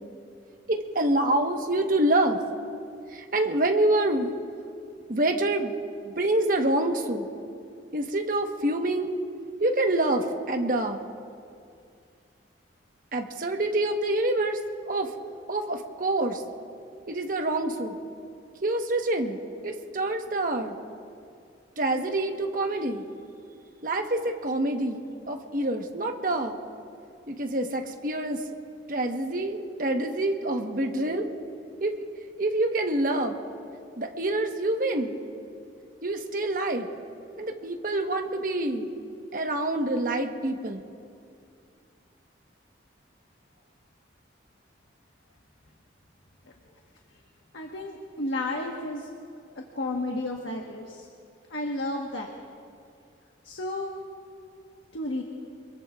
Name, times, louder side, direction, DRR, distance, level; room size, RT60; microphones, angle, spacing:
voice 1, 0.7-2.4 3.1-4.4 5.1-5.8 6.0-7.3 7.9-9.1 9.6-11.0 13.1-14.6 14.8-15.1 15.5-16.4 17.1-17.9 18.6-19.4 19.6-20.7 21.8-23.0 23.8-25.0 25.3-26.6 27.3-28.4 28.9-31.3 31.8-31.9 32.4-33.3 34.0-35.2 36.0-36.9 37.4-38.9 39.3-40.8, right 1 dB, 45° right, 3 dB, 1.2 m, -26 dB
voice 2, 47.5-49.1 49.6-51.1 51.5-52.3 53.4-53.9 54.9-55.2, left 2 dB, 75° left, 0 dB, 1.4 m, -32 dB
26.5 x 21.5 x 2.5 m, 2.4 s
head